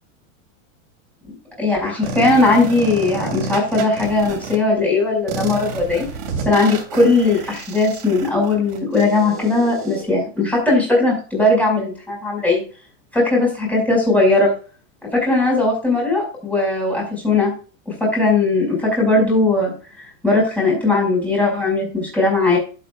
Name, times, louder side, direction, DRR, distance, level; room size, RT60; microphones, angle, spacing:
voice 1, 1.6-6.0 6.4-12.6 13.1-14.5 15.1-17.5 17.9-19.7 20.2-22.6, left 2 dB, 5° left, -3 dB, 5.5 m, -18 dB
sound 1, 2.0-4.5 5.3-10.0, right 4 dB, 80° right, 3.3 m, -30 dB
11.5 x 8.0 x 2.4 m, 0.37 s
supercardioid pair, 155°, 39 cm